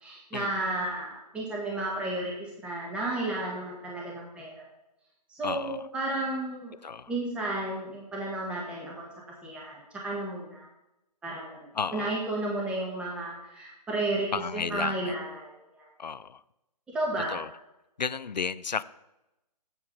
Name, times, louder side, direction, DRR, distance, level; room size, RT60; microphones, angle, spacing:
voice 1, 0.0-4.6 5.3-6.7 7.1-9.1 9.4-10.7 11.2-15.9 16.9-17.4, right 2 dB, 5° right, -4 dB, 1.3 m, -33 dB
voice 2, 5.4-5.8 6.8-7.1 11.8-12.2 14.3-15.1 16.0-16.4 17.3-17.5 18.0-18.8, left 6 dB, 90° left, 18 dB, 0.5 m, -32 dB
8.3 x 8.0 x 5.3 m, 0.94 s
figure-of-eight pair, 145°, 21 cm